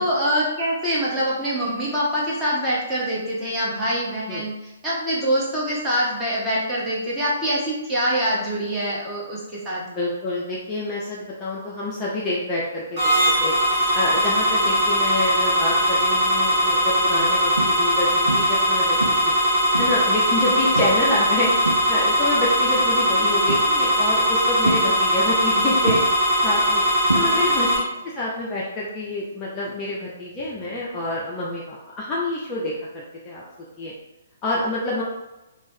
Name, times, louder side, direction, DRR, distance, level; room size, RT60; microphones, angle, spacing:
voice 1, 0.0-9.8 14.6-14.7 22.6-22.7 27.2-27.5, equal, 10° right, -7 dB, 1.0 m, -25 dB
voice 2, 9.9-13.1 13.4-13.5 13.9-19.3 19.8-21.5 21.9-26.0 26.4-26.8 27.1-27.7 28.0-33.4 33.8-33.9 34.4-35.0, left 2 dB, 20° left, -6 dB, 0.5 m, -27 dB
sound 1, 13.0-27.8, equal, 30° right, 1.3 m, -20 dB
sound 2, 15.9-16.3 16.8-17.0 17.6-18.0 18.3-18.7 19.0-20.1 20.8-21.1 21.4-22.3 23.5-24.0 24.6-25.5 25.9-27.8 28.0-28.4 30.5-30.6, right 2 dB, 75° right, 0.3 m, -28 dB
4.5 x 2.0 x 2.7 m, 1.0 s
figure-of-eight pair, 125°, 0 cm